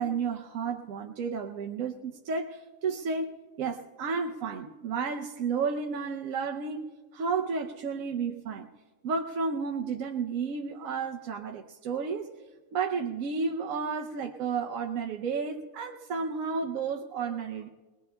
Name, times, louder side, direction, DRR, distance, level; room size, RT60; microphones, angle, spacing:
voice 1, 0.0-6.8 7.1-8.7 9.0-12.4 12.7-17.7, right 5 dB, 80° right, 2 dB, 1.1 m, -32 dB
21.5 x 20.0 x 2.2 m, 1.3 s
omnidirectional pair, 1.4 m